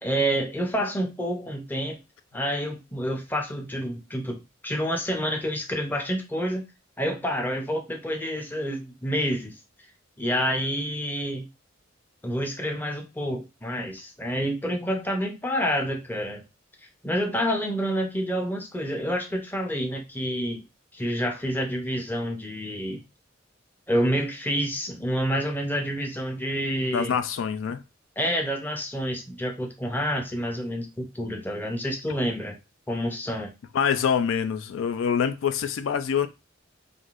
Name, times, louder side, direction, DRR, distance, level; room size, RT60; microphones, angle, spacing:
voice 1, 0.0-2.0 2.3-6.6 7.0-9.5 10.2-11.5 12.2-16.4 17.0-20.6 20.9-23.0 23.9-27.1 28.2-32.6 32.9-33.5, equal, 10° left, 0.6 m, -28 dB
voice 2, 26.9-27.8 33.7-36.3, left 7 dB, 85° left, 0.3 m, -25 dB
3.4 x 2.6 x 2.4 m
head